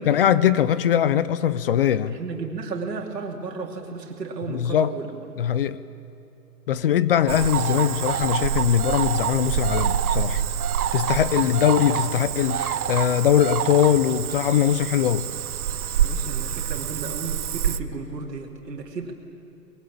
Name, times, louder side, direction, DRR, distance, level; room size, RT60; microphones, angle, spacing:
voice 1, 0.1-2.2 4.5-4.9 5.4-5.8 6.7-10.4 10.9-15.3, left 10 dB, 35° left, 0.8 m, -21 dB
voice 2, 2.1-5.3 5.5-5.6 16.0-19.1, right 4 dB, 85° right, 3.3 m, -34 dB
Cricket / Frog, 7.3-17.8, right 9 dB, 65° right, 1.2 m, -26 dB
24.5 x 21.5 x 8.7 m
hypercardioid pair, 150°, 48 cm